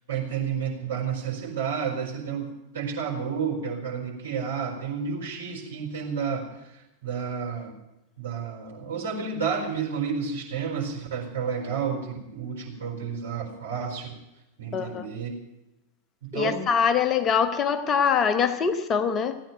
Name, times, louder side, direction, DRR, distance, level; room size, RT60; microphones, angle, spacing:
voice 1, 0.1-7.8 8.2-14.2 14.6-15.3 16.3-16.7, right 6 dB, 60° right, 0 dB, 4.4 m, -31 dB
voice 2, 14.7-15.1 16.3-19.4, left 6 dB, 25° left, 9 dB, 0.9 m, -23 dB
16.0 x 9.2 x 9.1 m, 0.95 s
figure-of-eight pair, 90°, 0 cm